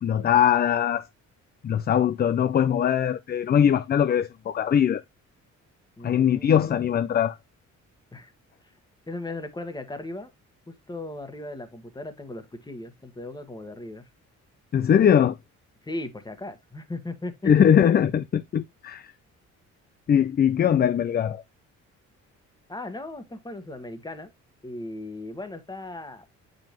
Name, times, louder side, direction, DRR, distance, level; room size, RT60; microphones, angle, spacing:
voice 1, 0.0-1.1 1.6-5.0 6.0-7.4 14.7-15.4 17.4-19.1 20.1-21.4, left 9 dB, 35° left, 0.4 m, -21 dB
voice 2, 6.0-6.9 8.1-8.3 9.1-10.3 10.7-14.0 15.8-17.5 22.7-24.3 24.6-26.3, left 2 dB, 15° left, 1.4 m, -37 dB
7.4 x 5.3 x 2.9 m
cardioid pair, 90°, 30 cm